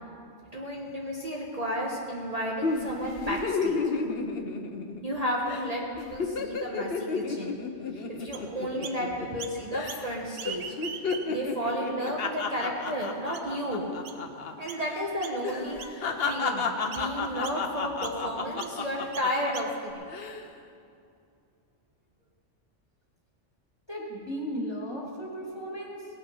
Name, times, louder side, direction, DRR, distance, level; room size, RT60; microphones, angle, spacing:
voice 1, 0.5-3.8 5.0-7.6 7.9-10.7 11.3-13.9 14.6-20.1, equal, 35° right, -3 dB, 1.3 m, -32 dB
sound 1, 2.6-5.2 5.5-5.7 6.0-9.4 9.7-10.2 10.5-14.5 14.8-15.0 15.4-19.5 20.0-20.4, left 4 dB, 60° left, 1.0 m, -32 dB
Chirp tweet, 8.3-9.0 9.4-10.1 10.3-11.5 12.1-12.2 12.9-13.0 13.3-13.6 14.0-14.2 14.7-14.9 15.2-15.5 15.8-16.5 16.9-17.1 17.4-17.6 18.0-18.2 18.6-18.8 19.1-19.9, right 7 dB, 70° right, 0.9 m, -41 dB
voice 2, 23.9-26.1, equal, 20° left, -3 dB, 2.4 m, -35 dB
18.0 x 8.9 x 5.5 m, 2.4 s
omnidirectional pair, 1.2 m